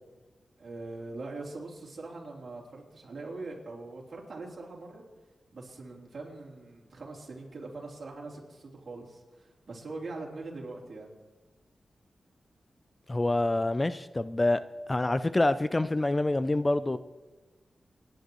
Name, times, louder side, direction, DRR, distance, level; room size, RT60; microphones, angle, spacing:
voice 1, 0.6-5.0 5.5-11.1, right 3 dB, 55° right, -3 dB, 3.4 m, -42 dB
voice 2, 13.1-14.6 14.9-17.0, left 2 dB, 25° left, 13 dB, 0.4 m, -26 dB
27.0 x 10.5 x 3.1 m, 1.2 s
cardioid pair, 80°, 0 cm